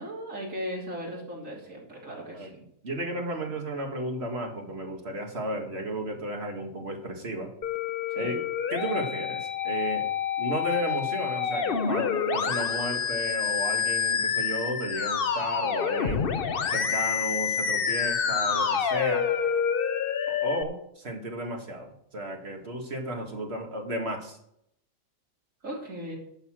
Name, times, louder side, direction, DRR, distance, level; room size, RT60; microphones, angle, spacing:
voice 1, 0.0-2.5 8.1-8.4 25.6-26.2, equal, 70° right, -2 dB, 3.7 m, -37 dB
voice 2, 2.8-7.5 8.2-8.4 8.7-10.1 10.4-16.3 16.7-19.3 20.3-24.4, right 1 dB, 50° right, 3 dB, 2.1 m, -33 dB
Musical instrument, 7.6-20.6, left 7 dB, 50° left, 0.9 m, -28 dB
11.5 x 6.8 x 6.3 m, 0.72 s
omnidirectional pair, 1.4 m